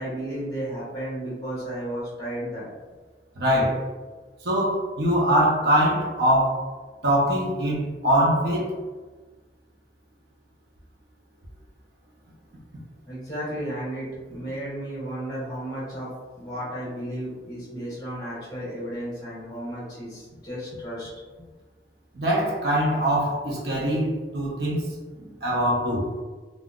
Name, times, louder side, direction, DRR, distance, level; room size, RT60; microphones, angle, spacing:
voice 1, 0.0-2.7 13.1-16.1 16.4-21.1, right 1 dB, 20° left, -7 dB, 1.3 m, -33 dB
voice 2, 3.4-3.8 4.4-6.6 7.0-8.7 22.1-26.1, equal, 65° right, -4 dB, 0.8 m, -23 dB
3.7 x 2.5 x 2.3 m, 1.3 s
head